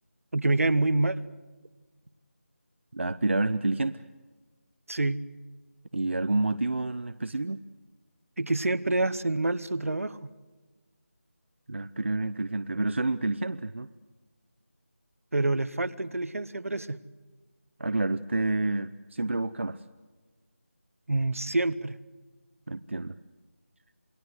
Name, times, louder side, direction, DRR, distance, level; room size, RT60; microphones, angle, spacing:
voice 1, 0.3-1.2 4.9-5.2 8.4-10.3 15.3-17.0 21.1-22.0, right 2 dB, 75° right, 15 dB, 1.2 m, -27 dB
voice 2, 2.9-4.0 5.9-7.6 11.7-13.9 17.8-19.8 22.7-23.2, right 2 dB, 55° right, 12 dB, 0.7 m, -29 dB
28.5 x 19.5 x 8.0 m, 1.3 s
figure-of-eight pair, 180°, 8 cm